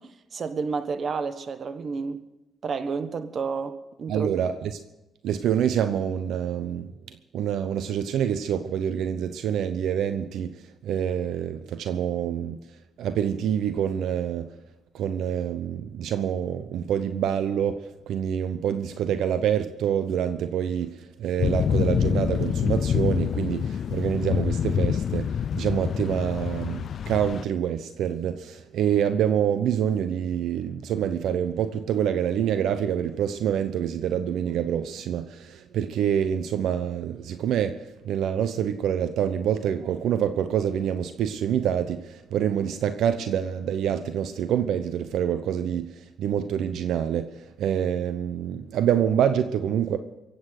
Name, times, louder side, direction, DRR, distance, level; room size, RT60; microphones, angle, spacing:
voice 1, 0.0-2.2 2.6-4.4, right 5 dB, 50° right, 1.3 m, -31 dB
voice 2, 4.1-4.7 5.2-10.5 10.8-12.6 13.0-14.5 14.9-17.8 18.1-25.3 25.5-37.8 38.0-47.3 47.6-50.0, right 9 dB, 80° right, 0.8 m, -26 dB
sound 1, 21.4-27.5, left 8 dB, 60° left, 0.4 m, -26 dB
23.5 x 8.6 x 6.5 m
cardioid pair, 90°, 0 cm